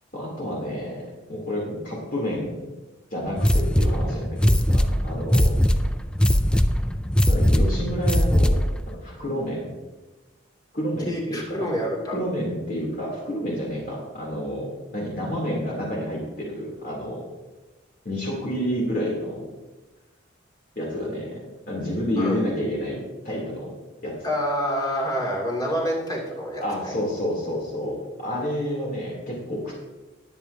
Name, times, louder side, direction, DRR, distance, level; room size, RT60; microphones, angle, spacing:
voice 1, 0.1-2.6 3.1-5.6 7.2-8.6 8.9-9.7 10.7-11.7 12.1-14.7 14.9-17.2 18.0-19.5 20.7-21.4 21.7-23.7 24.0-24.2 26.6-29.9, equal, 45° left, -3 dB, 3.1 m, -29 dB
sound 1, 3.4-8.8, equal, 5° left, 0.3 m, -20 dB
voice 2, 11.0-12.2 22.2-22.4 24.2-27.0, equal, 20° left, -3 dB, 2.5 m, -27 dB
20.5 x 8.4 x 2.8 m, 1.1 s
head